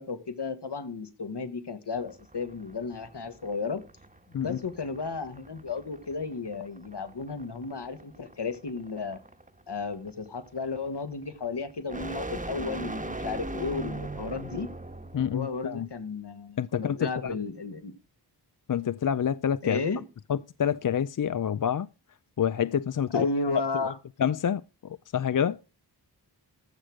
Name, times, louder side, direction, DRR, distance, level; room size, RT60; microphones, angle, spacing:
voice 1, 0.0-3.8 4.4-9.2 9.7-14.7 15.3-17.9 19.6-20.0 23.1-23.9, left 4 dB, 70° left, 1.8 m, -33 dB
sound 1, 2.0-15.5, right 2 dB, 20° right, 1.3 m, -41 dB
voice 2, 15.1-15.9 16.6-17.4 18.7-19.8 20.3-21.9 22.4-23.3 24.2-25.6, left 8 dB, 50° left, 0.5 m, -27 dB
14.5 x 6.1 x 5.0 m
wide cardioid pair, 55°, 42 cm